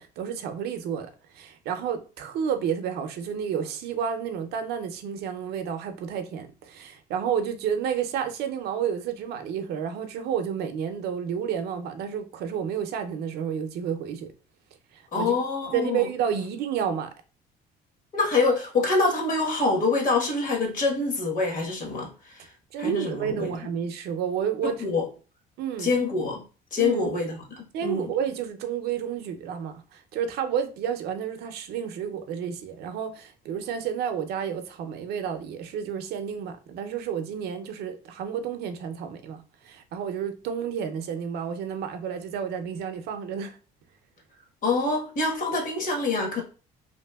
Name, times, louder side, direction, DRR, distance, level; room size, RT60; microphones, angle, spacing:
voice 1, 0.0-14.3 14.9-15.4 15.7-17.1 22.7-25.0 25.6-25.9 26.8-27.1 27.7-43.6, right 8 dB, 75° right, 0.5 m, -30 dB
voice 2, 15.1-16.1 18.1-22.5 22.8-23.5 24.8-25.1 25.8-26.4 26.7-28.1 44.6-46.4, left 3 dB, 55° left, 1.2 m, -25 dB
2.9 x 2.6 x 2.2 m
cardioid pair, 110°, 17 cm